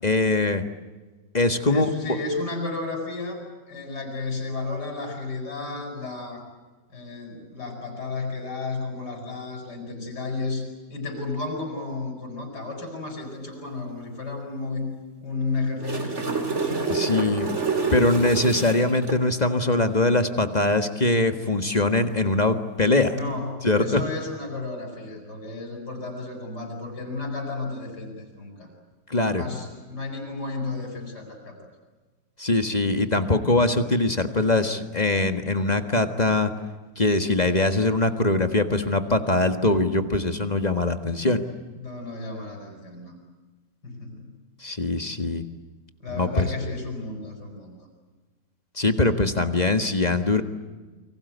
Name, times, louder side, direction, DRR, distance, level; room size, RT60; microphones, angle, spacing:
voice 1, 0.0-0.6 1.3-2.2 16.9-17.5 17.9-23.2 23.6-24.0 29.1-29.4 32.4-36.5 37.0-41.4 44.6-45.4 46.2-46.5 48.8-50.4, left 2 dB, 25° left, 8 dB, 1.7 m, -22 dB
voice 2, 1.7-6.4 6.9-14.9 15.2-16.6 17.2-17.6 23.1-28.7 29.2-31.6 41.8-43.2 43.8-44.3 46.0-47.8, left 3 dB, 65° left, 3 dB, 8.1 m, -33 dB
sound 1, 15.6-19.2 23.0-23.2, right 4 dB, 40° right, 3.2 m, -27 dB
29.5 x 24.0 x 8.2 m, 1.3 s
omnidirectional pair, 1.9 m